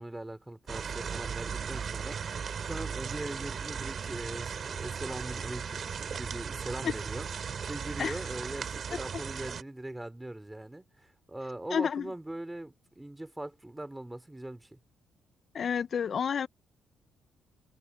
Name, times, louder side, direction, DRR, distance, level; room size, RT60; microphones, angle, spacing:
voice 1, 0.0-7.3 7.7-14.8, right 1 dB, 10° right, 3.8 m, -41 dB
sound 1, 0.7-9.6, right 6 dB, 50° right, 3.9 m, -37 dB
voice 2, 11.7-12.1 15.5-16.5, left 7 dB, 50° left, 0.4 m, -30 dB
cardioid pair, 90°, 0 cm